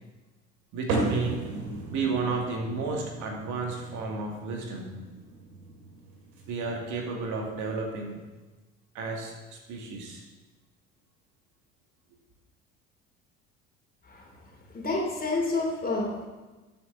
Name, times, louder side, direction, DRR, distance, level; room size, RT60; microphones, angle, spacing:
voice 1, 0.7-1.5 1.9-4.9 6.5-8.2 8.9-10.2, right 4 dB, 55° right, 1 dB, 2.2 m, -32 dB
sound 1, 0.9-7.6, right 2 dB, 70° right, 2.5 m, -35 dB
voice 2, 14.7-16.3, left 2 dB, 25° left, -1 dB, 3.2 m, -29 dB
13.5 x 7.6 x 3.9 m, 1.2 s
hypercardioid pair, 70°, 35 cm